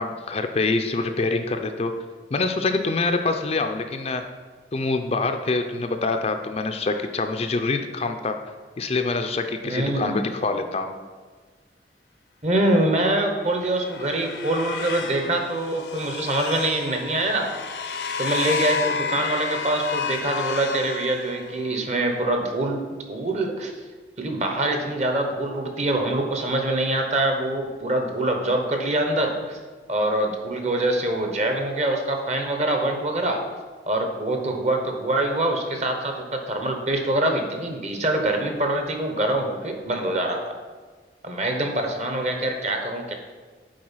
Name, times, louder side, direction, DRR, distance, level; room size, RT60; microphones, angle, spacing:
voice 1, 0.0-1.9 2.3-4.2 4.7-8.4 8.8-10.9, left 3 dB, 35° left, 6 dB, 0.4 m, -25 dB
voice 2, 9.6-10.2 12.4-17.5 18.2-23.7 24.2-29.6 29.9-33.4 33.9-40.6 41.2-43.1, right 1 dB, 40° right, 3 dB, 1.0 m, -24 dB
sound 1, 13.4-21.7, left 5 dB, 75° left, 0.6 m, -31 dB
7.7 x 4.4 x 5.6 m, 1.4 s
head